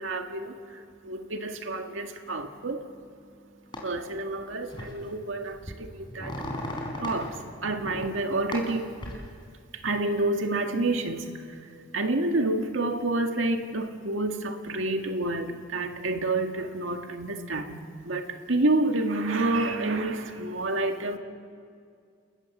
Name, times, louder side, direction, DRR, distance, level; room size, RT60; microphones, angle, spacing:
voice 1, 0.0-6.4 7.0-8.9 9.7-21.2, right 2 dB, 90° right, 5 dB, 1.9 m, -29 dB
sound 1, 3.7-3.8 4.7-5.0 5.4-7.3 7.7-8.1 8.5-9.2, left 1 dB, 25° left, 4.2 m, -35 dB
29.5 x 18.5 x 7.3 m, 2.2 s
head